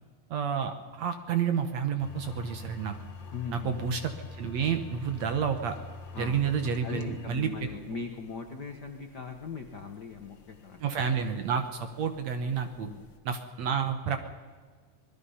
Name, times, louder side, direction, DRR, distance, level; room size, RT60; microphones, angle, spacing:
voice 1, 0.3-2.9 3.5-5.8 6.2-7.7 10.8-12.9 13.3-14.2, right 7 dB, 65° right, 7 dB, 2.0 m, -30 dB
sound 1, 2.0-13.2, left 4 dB, 50° left, 1.6 m, -47 dB
voice 2, 3.3-3.8 6.1-6.4 6.8-11.0 12.8-13.1, left 5 dB, 85° left, 5 dB, 0.9 m, -40 dB
26.0 x 20.0 x 5.6 m, 1.6 s
omnidirectional pair, 3.8 m